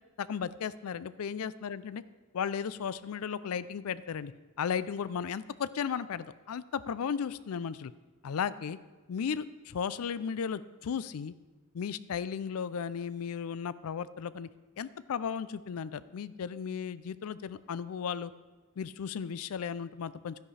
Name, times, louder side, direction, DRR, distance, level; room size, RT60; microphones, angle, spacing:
voice 1, 0.2-2.0 2.3-4.3 4.6-7.9 8.2-8.8 9.1-11.3 11.7-14.5 14.8-18.3 18.8-20.5, left 7 dB, 75° left, 16 dB, 0.4 m, -35 dB
12.5 x 10.5 x 3.3 m, 1.2 s
head